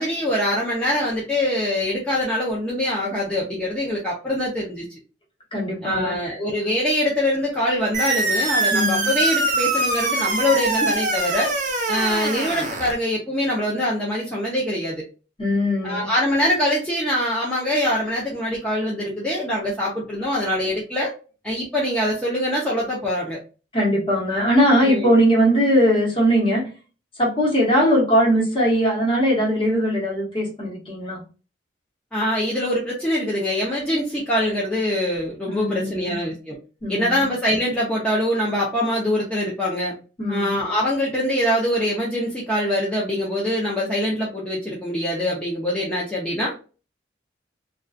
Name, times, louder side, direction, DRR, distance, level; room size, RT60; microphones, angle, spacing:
voice 1, 0.0-4.9 5.8-11.5 11.9-15.0 15.8-21.1 21.4-23.4 24.7-25.1 32.1-36.6 36.9-39.9 40.3-46.5, left 1 dB, 5° left, -5 dB, 0.5 m, -23 dB
voice 2, 5.5-6.3 8.7-9.1 15.4-16.1 23.7-26.6 27.2-31.2 35.5-36.2 36.8-37.2 40.2-40.5, equal, 30° left, -2 dB, 1.0 m, -20 dB
sound 1, 7.9-12.9, right 2 dB, 40° right, 0.6 m, -23 dB
2.3 x 2.3 x 2.4 m, 0.34 s
head